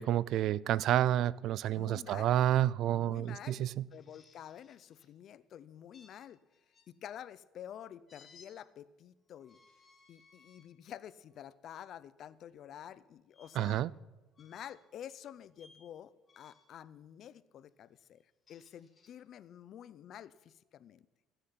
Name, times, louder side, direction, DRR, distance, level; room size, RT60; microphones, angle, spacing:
voice 1, 0.0-3.8 13.6-13.9, right 12 dB, 55° right, 22 dB, 0.3 m, -29 dB
voice 2, 1.7-2.4 2.9-3.7 3.9-6.4 6.9-9.6 10.1-13.8 14.4-18.2 18.5-21.1, left 10 dB, 45° left, 16 dB, 0.5 m, -49 dB
sound 1, 3.9-5.1 5.9-6.9 8.1-8.5 9.4-10.7 11.3-11.5 13.3-13.5 14.3-14.9 15.5-15.9 16.3-16.8 18.2-19.1, left 4 dB, 25° left, 1.9 m, -63 dB
15.0 x 9.9 x 5.8 m, 1.2 s
cardioid pair, 145°, 0 cm